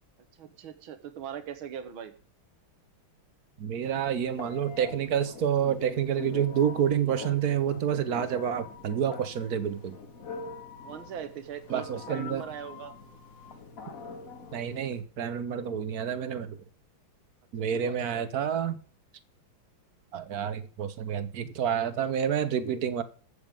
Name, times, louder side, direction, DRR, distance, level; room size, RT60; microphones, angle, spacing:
voice 1, 0.4-2.2 10.8-12.9 17.7-18.3, right 9 dB, 80° right, 2.1 m, -41 dB
voice 2, 3.6-10.0 11.7-12.4 14.5-16.6 17.5-18.8 20.1-23.0, right 8 dB, 55° right, 1.3 m, -28 dB
Telephone, 3.8-15.0, left 4 dB, 45° left, 1.9 m, -44 dB
15.0 x 6.9 x 5.2 m
omnidirectional pair, 2.2 m